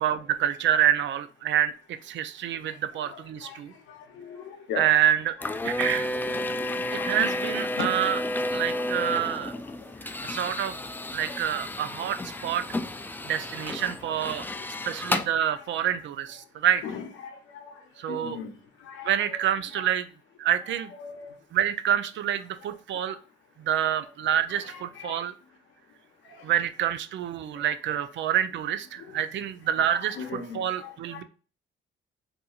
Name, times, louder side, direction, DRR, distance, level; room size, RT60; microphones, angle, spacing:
voice 1, 0.0-3.7 4.8-5.3 5.6-6.1 6.9-8.2 8.5-9.5 10.2-10.8 11.1-12.6 13.2-16.8 18.0-18.4 19.0-20.1 20.4-20.9 21.5-23.2 23.6-25.3 26.4-31.2, right 10 dB, 70° right, 0.5 m, -27 dB
voice 2, 2.6-4.9 6.3-7.3 7.7-8.0 8.7-8.9 9.5-10.1 11.3-11.4 11.7-11.8 12.3-12.4 13.2-14.3 14.6-15.0 15.5-15.7 16.8-19.5 19.7-19.8 21.0-21.4 24.5-25.2 26.3-26.5 27.5-28.0 29.0-29.2 29.9-31.2, left 6 dB, 90° left, 0.7 m, -41 dB
sound 1, 5.4-15.3, left 1 dB, 10° left, 0.3 m, -31 dB
4.2 x 2.7 x 2.3 m
cardioid pair, 90°, 20 cm